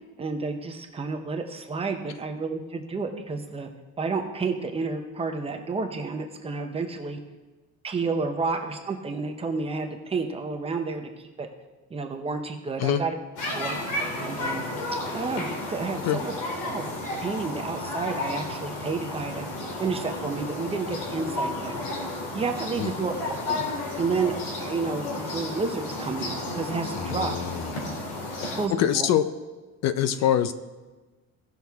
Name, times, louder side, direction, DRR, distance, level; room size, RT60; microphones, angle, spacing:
voice 1, 0.2-3.7 4.0-7.2 7.8-11.5 11.9-13.2 13.5-13.8 14.2-14.6 15.1-16.3 16.7-19.5 19.8-21.8 22.3-23.6 24.0-27.3 28.5-29.1, right 4 dB, 20° right, 4 dB, 0.7 m, -30 dB
sound 1, 13.4-28.7, left 2 dB, 85° left, 2.3 m, -32 dB
voice 2, 26.9-28.0 28.4-29.3 29.8-30.5, left 10 dB, 55° left, 11 dB, 0.6 m, -25 dB
16.5 x 6.1 x 3.5 m, 1.2 s
cardioid pair, 175°, 32 cm